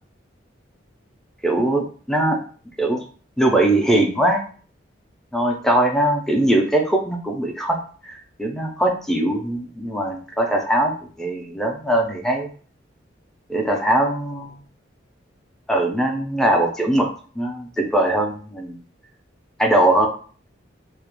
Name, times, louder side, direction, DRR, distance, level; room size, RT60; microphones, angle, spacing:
voice 1, 1.4-2.4 2.8-3.0 3.4-4.4 5.3-7.8 8.1-8.2 8.4-10.9 11.2-12.5 13.5-14.6 15.7-17.1 17.4-18.8 19.6-20.1, right 1 dB, ahead, 2 dB, 0.4 m, -20 dB
2.3 x 2.0 x 2.9 m, 0.42 s
head